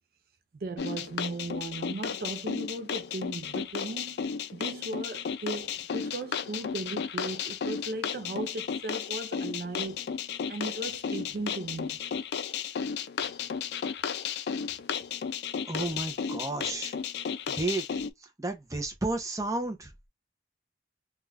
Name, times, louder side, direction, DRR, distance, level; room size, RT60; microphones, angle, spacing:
voice 1, 0.6-4.3 4.5-10.0 10.5-12.0, right 2 dB, 55° right, 0.4 m, -37 dB
sound 1, 0.8-18.1, left 7 dB, 70° left, 0.3 m, -34 dB
voice 2, 15.7-16.9 17.5-17.8 18.4-20.1, right 2 dB, 20° right, 0.6 m, -32 dB
2.5 x 2.3 x 3.2 m
head